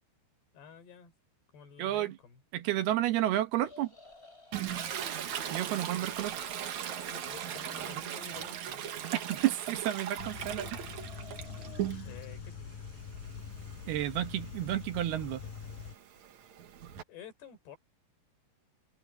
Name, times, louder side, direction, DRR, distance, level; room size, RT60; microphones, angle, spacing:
voice 1, 0.5-1.1 1.5-2.4 4.7-4.9 5.9-6.1 7.1-8.9 12.0-12.7 17.1-17.8, left 7 dB, 75° left, 6.1 m, -50 dB
voice 2, 1.8-2.1 2.5-3.9 5.5-6.3 9.1-10.9 13.9-15.4, right 13 dB, 75° right, 3.0 m, -31 dB
sound 1, 3.6-5.3 5.5-6.4 6.7-8.1 8.4-10.0 10.4-11.9, left 2 dB, 15° left, 4.6 m, -57 dB
Toilet flush, 4.5-12.3 12.7-17.0, right 10 dB, 55° right, 2.3 m, -39 dB
sound 2, 10.2-15.9, left 6 dB, 55° left, 5.1 m, -44 dB
omnidirectional pair, 4.8 m